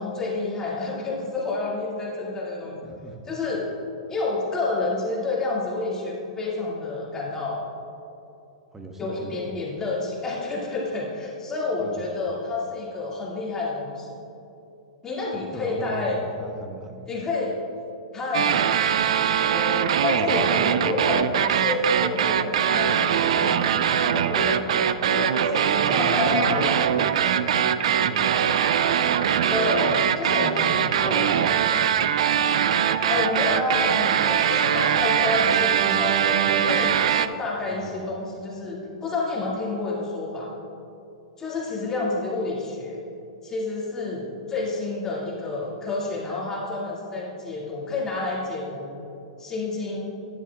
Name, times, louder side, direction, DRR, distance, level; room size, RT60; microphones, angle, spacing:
voice 1, 0.0-2.9 3.3-3.7 4.1-7.7 9.0-14.1 15.0-16.2 17.1-17.6 18.1-18.7 19.3-23.6 23.9-26.7 29.5-31.4 33.1-40.5 41.4-43.1 43.4-49.0 49.4-50.1, left 3 dB, 15° left, -5 dB, 2.3 m, -29 dB
voice 2, 2.8-3.2 8.7-9.4 11.8-12.1 15.5-17.0 20.1-20.9 25.8-27.6 27.9-29.4 30.4-32.7 37.6-38.1, right 1 dB, 10° right, 3 dB, 1.1 m, -38 dB
sound 1, 18.3-37.3, right 9 dB, 70° right, 0.4 m, -22 dB
12.0 x 10.0 x 2.4 m, 2.7 s
hypercardioid pair, 130°, 3 cm